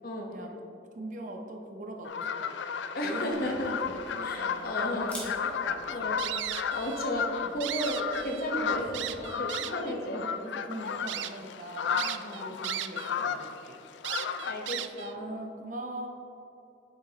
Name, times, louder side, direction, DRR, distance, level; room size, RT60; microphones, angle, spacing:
voice 1, 0.0-0.3 2.9-3.8 4.2-5.1 5.6-6.2 6.5-10.3 10.7-10.9 12.2-12.5 14.1-15.3, equal, 55° left, 0 dB, 1.0 m, -34 dB
voice 2, 0.9-2.5 3.0-5.9 7.4-7.6 8.6-8.8 9.8-10.0 10.4-13.8 15.1-16.1, right 1 dB, 45° right, 2 dB, 0.8 m, -42 dB
sound 1, 2.1-14.7, left 7 dB, 75° left, 0.4 m, -34 dB
Camera, 3.3-9.1, left 1 dB, 10° left, 1.5 m, -50 dB
sound 2, 6.2-7.1 7.4-8.5 8.9-9.9 10.5-10.6 11.1-11.3 12.0-13.1 13.4-13.5 14.0-15.1, right 12 dB, 80° right, 0.4 m, -36 dB
8.5 x 7.0 x 2.9 m, 2.8 s
head